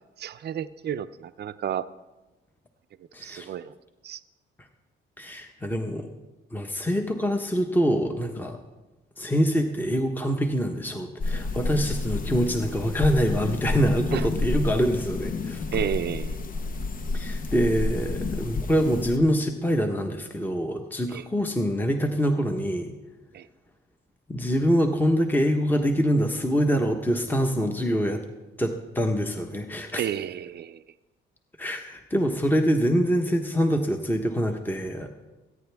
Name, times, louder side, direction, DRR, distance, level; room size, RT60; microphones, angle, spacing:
voice 1, 0.2-1.9 3.2-3.7 4.0-4.2 14.1-14.3 15.7-16.4 21.1-21.2 23.3-23.5 30.0-30.8, right 9 dB, 55° right, 13 dB, 0.5 m, -31 dB
voice 2, 3.1-3.5 5.2-6.1 6.5-8.6 9.2-15.6 17.1-22.9 24.3-28.2 28.6-30.0 31.6-35.1, equal, 10° left, 4 dB, 1.2 m, -25 dB
sound 1, 11.2-19.2, left 3 dB, 45° left, 0.9 m, -30 dB
23.5 x 9.8 x 3.5 m, 1.1 s
cardioid pair, 90°, 20 cm